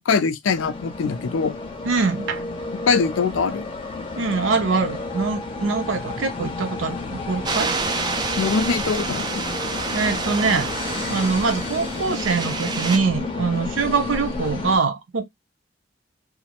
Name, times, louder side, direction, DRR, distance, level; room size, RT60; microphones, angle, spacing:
voice 1, 0.0-1.5 2.8-3.7 8.4-9.4, left 5 dB, 85° left, 0.4 m, -22 dB
sound 1, 0.5-14.8, left 3 dB, 30° left, 0.6 m, -31 dB
voice 2, 1.8-2.4 4.2-7.7 9.9-10.7 11.1-15.3, right 4 dB, 80° right, 0.6 m, -23 dB
sound 2, 7.5-13.0, right 4 dB, 20° right, 0.3 m, -29 dB
2.4 x 2.0 x 2.8 m
head